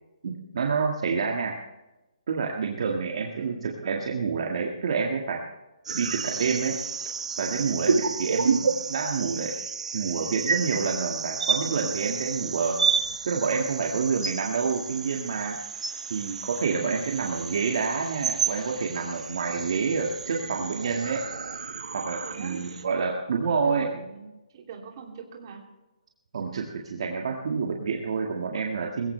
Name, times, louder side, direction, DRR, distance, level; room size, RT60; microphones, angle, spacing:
voice 1, 0.2-1.6 2.3-5.4 5.9-6.8 7.4-9.5 9.9-12.8 13.2-15.6 16.1-21.3 21.9-23.8 26.3-29.1, right 5 dB, 50° right, 0 dB, 1.8 m, -28 dB
voice 2, 5.9-6.5 7.5-7.8 22.2-22.6 23.5-25.6, right 6 dB, 35° right, 0 dB, 2.9 m, -42 dB
sound 1, 5.9-22.8, right 5 dB, 65° right, 1.6 m, -31 dB
20.5 x 16.0 x 3.3 m, 1.0 s
hypercardioid pair, 170°, 4 cm